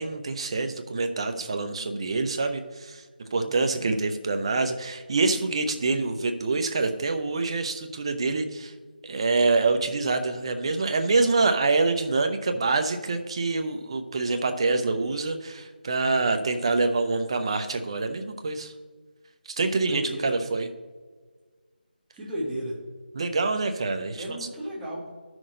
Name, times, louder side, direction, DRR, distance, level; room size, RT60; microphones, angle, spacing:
voice 1, 0.0-3.0 3.3-8.7 9.0-18.7 19.5-20.7 23.1-24.2, right 3 dB, 30° right, 7 dB, 0.8 m, -26 dB
voice 2, 3.4-3.8 19.7-20.3 22.1-22.8 24.1-25.1, equal, 5° right, -7 dB, 1.4 m, -34 dB
12.0 x 6.2 x 3.9 m, 1.5 s
figure-of-eight pair, 170°, 5 cm